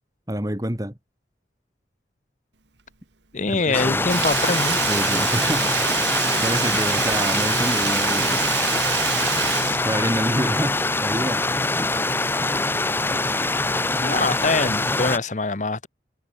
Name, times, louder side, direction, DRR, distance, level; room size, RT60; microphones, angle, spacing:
voice 1, 0.3-1.0 3.5-4.2 4.9-5.9 6.4-8.4 9.8-11.5, right 1 dB, 20° right, 2.0 m, -27 dB
voice 2, 3.3-5.0 14.0-15.9, left 3 dB, 40° left, 0.8 m, -24 dB
Stream, 3.7-15.2, left 2 dB, 10° left, 1.1 m, -24 dB
Sink (filling or washing), 4.1-10.6 10.9-11.0, right 11 dB, 80° right, 2.0 m, -27 dB
head